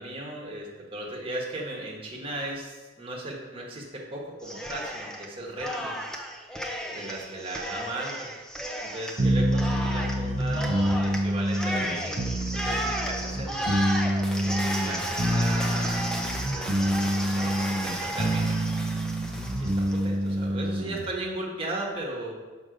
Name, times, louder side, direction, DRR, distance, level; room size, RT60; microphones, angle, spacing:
voice 1, 0.0-5.9 6.9-8.3 8.8-13.7 14.3-16.1 16.5-18.6 19.6-22.3, right 1 dB, 30° right, -2 dB, 1.4 m, -36 dB
Cheering, 4.4-5.3 5.6-20.1, equal, 5° left, 0.6 m, -34 dB
sound 1, 9.2-21.1, right 1 dB, 45° right, 0.8 m, -27 dB
6.3 x 5.3 x 5.1 m, 1.3 s
head